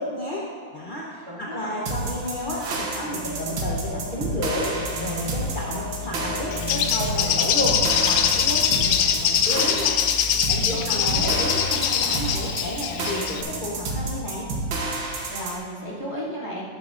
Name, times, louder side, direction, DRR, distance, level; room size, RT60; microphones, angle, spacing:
voice 1, 0.0-10.0 10.5-14.5, left 1 dB, 35° left, -4 dB, 0.8 m, -31 dB
voice 2, 1.3-1.7 10.7-11.3 15.3-16.6, equal, 15° right, -8 dB, 1.9 m, -34 dB
sound 1, 1.9-15.6, right 3 dB, 75° right, 1.9 m, -30 dB
sound 2, 3.0-14.0, left 3 dB, 35° right, 0.3 m, -36 dB
Bird, 6.5-13.4, left 9 dB, 90° left, 1.4 m, -23 dB
13.0 x 9.5 x 2.5 m, 2.2 s
omnidirectional pair, 2.2 m